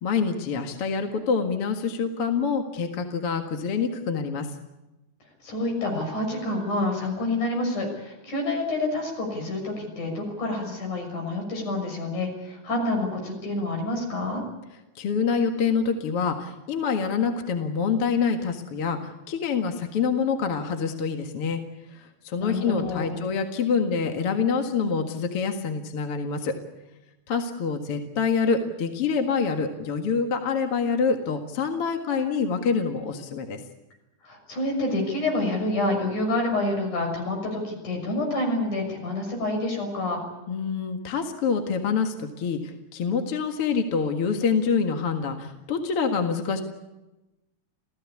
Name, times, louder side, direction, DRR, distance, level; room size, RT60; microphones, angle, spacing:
voice 1, 0.0-4.5 15.0-21.6 21.9-26.5 27.3-33.6 40.5-46.6, left 5 dB, 50° left, 5 dB, 2.5 m, -26 dB
voice 2, 5.4-14.4 22.4-23.2 34.2-40.2, left 2 dB, 75° left, 3 dB, 7.9 m, -28 dB
28.0 x 17.0 x 8.5 m, 1.0 s
omnidirectional pair, 3.6 m